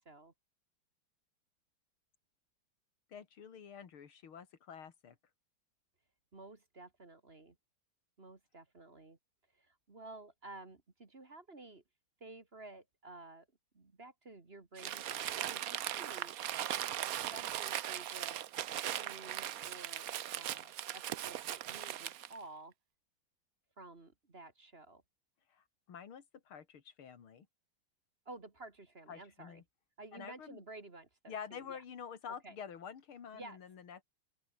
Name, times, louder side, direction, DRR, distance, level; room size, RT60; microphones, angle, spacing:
voice 1, 3.1-5.2 25.5-27.5 29.1-29.6 30.1-30.6 31.3-34.0, left 7 dB, 85° left, 2.9 m, -48 dB
voice 2, 6.3-7.6 8.2-9.2 9.5-11.8 12.2-13.5 13.7-16.4 17.0-18.4 18.6-22.7 23.8-25.0 28.3-29.6 30.0-31.8 32.3-32.6 33.3-33.6, right 2 dB, 30° right, 2.2 m, -52 dB
Crumpling crinkling, 14.8-22.4, right 11 dB, 65° right, 0.9 m, -39 dB
open air
omnidirectional pair, 2.2 m